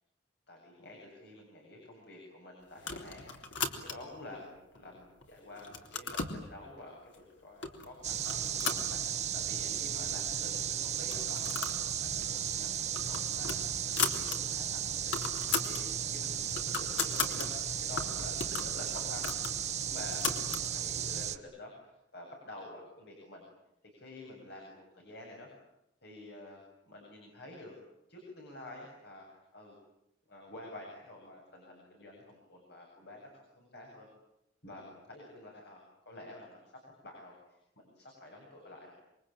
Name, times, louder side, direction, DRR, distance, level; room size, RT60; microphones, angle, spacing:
voice 1, 0.5-11.7 12.0-23.5 23.8-25.5 26.0-27.7 28.1-29.3 29.5-29.8 30.3-34.1 34.6-36.6 37.0-38.9, left 1 dB, 60° left, 0 dB, 8.0 m, -49 dB
sound 1, 2.8-4.2 4.8-5.3 5.6-6.4 7.1-7.2 7.6-7.9 8.2-9.5 9.8-9.9 10.1-10.2 11.0-11.8 12.2-12.3 12.7-14.4 14.7-14.8 15.0-15.8 16.2-17.5 18.0-20.7, left 5 dB, 75° left, 3.6 m, -36 dB
sound 2, 8.0-21.4, right 8 dB, 40° right, 1.2 m, -35 dB
27.0 x 24.0 x 9.0 m, 0.85 s
head